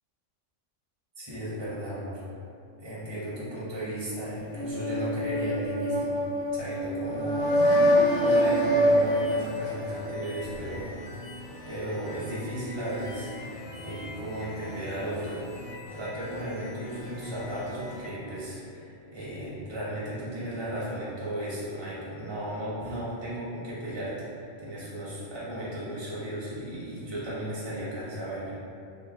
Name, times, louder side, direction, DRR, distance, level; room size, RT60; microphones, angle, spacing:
voice 1, 1.2-2.2 2.8-6.2 6.5-7.9 8.2-11.2 11.7-28.5, right 1 dB, 35° right, -8 dB, 0.4 m, -35 dB
sound 1, 4.5-10.3, equal, 90° left, 1.1 m, -25 dB
sound 2, 7.4-18.1, left 1 dB, 50° left, 0.7 m, -43 dB
2.9 x 2.0 x 3.5 m, 2.6 s
omnidirectional pair, 1.4 m